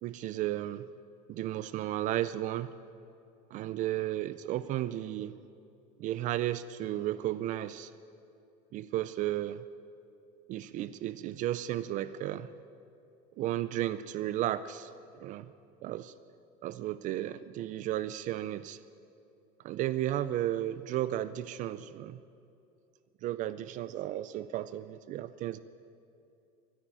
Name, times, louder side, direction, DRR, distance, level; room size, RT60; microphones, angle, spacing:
voice 1, 0.0-0.9 1.3-2.7 3.5-5.3 6.0-7.9 8.7-9.6 10.5-12.5 13.4-14.9 15.2-15.5 15.8-16.1 16.6-18.8 19.6-22.2 23.2-25.6, right 13 dB, 40° right, 15 dB, 0.4 m, -34 dB
13.5 x 10.5 x 10.0 m, 2.6 s
cardioid pair, 170°, 20 cm